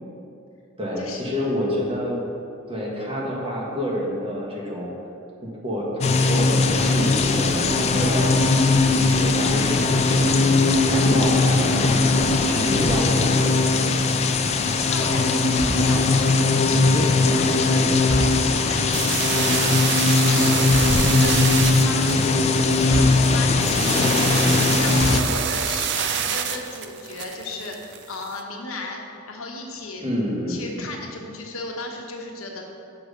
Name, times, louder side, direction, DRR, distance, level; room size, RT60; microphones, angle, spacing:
voice 1, 0.8-2.3 2.7-4.9 5.4-8.3 8.9-9.7 10.0-10.3 10.9-14.0 30.0-30.6, equal, 30° right, -3 dB, 1.4 m, -28 dB
sound 1, 6.0-25.2, left 3 dB, 30° left, 0.4 m, -19 dB
voice 2, 14.4-19.7 20.2-21.4 21.8-24.4 24.8-29.0 29.3-30.0 30.5-32.6, left 2 dB, 85° left, 1 dB, 1.1 m, -34 dB
sound 2, 15.5-16.1 18.0-18.7 20.6-21.1 22.9-23.7 24.8-25.5, equal, 70° left, 1.0 m, -29 dB
sound 3, 18.9-28.3, right 8 dB, 55° right, 0.5 m, -27 dB
6.1 x 4.9 x 6.6 m, 2.6 s
head